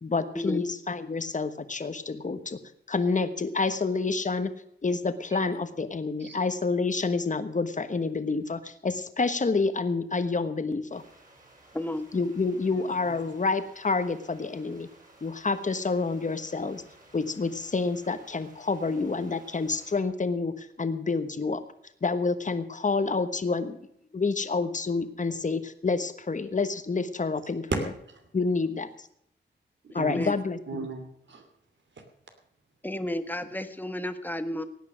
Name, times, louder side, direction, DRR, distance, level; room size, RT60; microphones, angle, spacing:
voice 1, 0.0-2.6 2.9-4.5 4.8-11.0 12.1-14.9 15.2-16.8 17.1-21.6 22.0-23.8 24.1-27.7 28.3-28.9 29.9-30.6, left 4 dB, 40° left, 10 dB, 1.3 m, -28 dB
sound 1, 10.9-20.0, right 1 dB, 40° right, 5.9 m, -56 dB
voice 2, 11.7-12.1 29.9-30.4 32.8-34.6, left 1 dB, 10° left, 10 dB, 1.2 m, -32 dB
voice 3, 12.7-13.1 27.7-28.2 29.8-30.2 30.7-31.4, right 3 dB, 65° right, 6 dB, 2.8 m, -35 dB
17.0 x 9.6 x 6.3 m, 0.71 s
wide cardioid pair, 85°, 20 cm